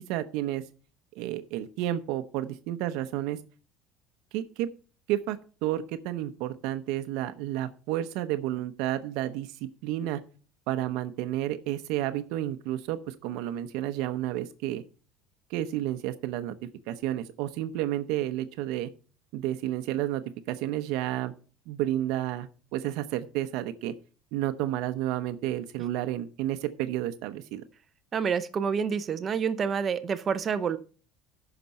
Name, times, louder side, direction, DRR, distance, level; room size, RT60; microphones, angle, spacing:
voice 1, 0.1-0.6 1.1-3.4 4.3-4.7 5.1-10.2 10.7-14.8 15.5-16.6 16.9-18.9 19.3-20.2 20.5-21.3 21.7-23.9 24.3-27.6, right 13 dB, 70° right, 9 dB, 0.8 m, -31 dB
voice 2, 28.1-30.8, right 6 dB, 25° right, 11 dB, 0.6 m, -28 dB
15.0 x 5.9 x 4.2 m, 0.38 s
cardioid pair, 160°, 0 cm